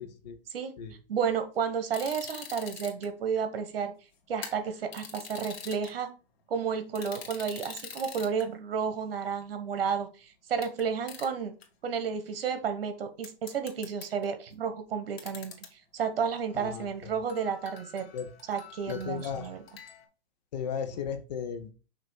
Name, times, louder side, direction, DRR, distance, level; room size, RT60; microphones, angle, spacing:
voice 1, 0.0-0.4 0.8-0.9 16.6-16.9 18.1-18.3 18.9-19.5 20.5-21.7, left 7 dB, 45° left, 7 dB, 1.0 m, -35 dB
voice 2, 1.1-3.9 4.3-6.1 6.5-10.1 10.5-11.5 11.8-15.5 15.9-18.1 18.5-19.8, right 6 dB, 70° right, 9 dB, 1.4 m, -31 dB
sound 1, 1.9-3.1 4.3-5.9 6.9-8.4 9.4-9.5 10.6-10.8 11.1-11.3 11.6-11.7 13.2-14.3 15.2-15.7 16.0-16.1 16.5-16.8 17.3-20.0, left 6 dB, 85° left, 1.9 m, -45 dB
6.7 x 3.0 x 4.6 m, 0.34 s
hypercardioid pair, 165°, 30 cm